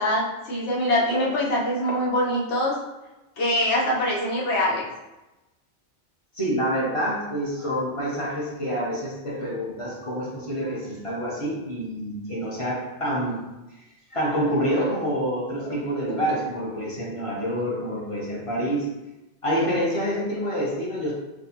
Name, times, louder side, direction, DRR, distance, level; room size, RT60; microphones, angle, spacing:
voice 1, 0.0-2.8 3.4-4.8, left 1 dB, 75° left, -5 dB, 1.2 m, -24 dB
voice 2, 6.3-13.5 14.1-18.9 19.4-21.1, equal, 30° left, -5 dB, 0.7 m, -27 dB
4.2 x 2.0 x 2.8 m, 1.0 s
omnidirectional pair, 1.2 m